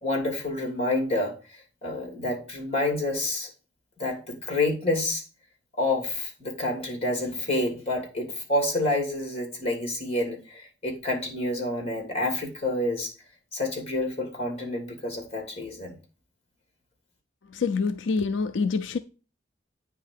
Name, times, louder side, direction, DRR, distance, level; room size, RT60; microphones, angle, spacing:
voice 1, 0.0-1.4 1.8-3.5 4.0-5.2 5.8-13.1 13.5-16.0, left 2 dB, 35° left, 2.7 m, -28 dB
voice 2, 17.5-19.0, left 4 dB, 80° left, 0.4 m, -26 dB
9.1 x 3.6 x 6.6 m
head